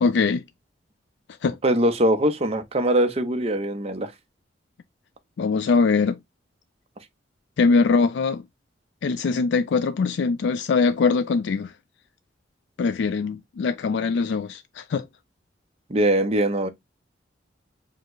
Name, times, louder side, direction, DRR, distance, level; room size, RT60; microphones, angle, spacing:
voice 1, 0.0-0.4 1.4-1.6 5.4-6.2 7.6-8.4 9.0-11.7 12.8-15.0, left 4 dB, 70° left, 0.3 m, -22 dB
voice 2, 1.6-4.1 15.9-16.7, right 1 dB, 35° right, 0.7 m, -22 dB
5.1 x 2.1 x 3.7 m
head